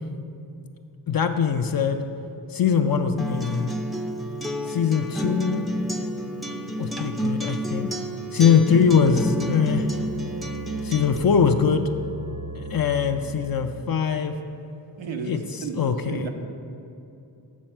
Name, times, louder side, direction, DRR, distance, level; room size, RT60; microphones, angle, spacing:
voice 1, 1.1-2.0 2.5-3.7 4.7-5.7 6.8-7.9 8.3-9.9 10.8-11.9 12.6-14.3 15.2-16.3, left 6 dB, 50° left, 6 dB, 0.5 m, -22 dB
Acoustic guitar, 3.2-11.2, right 1 dB, ahead, 0.5 m, -30 dB
sound 1, 8.8-13.9, right 2 dB, 45° right, 0.7 m, -38 dB
voice 2, 15.0-16.3, right 4 dB, 90° right, 4 dB, 0.8 m, -33 dB
7.4 x 6.4 x 4.4 m, 2.7 s
cardioid pair, 55°, 45 cm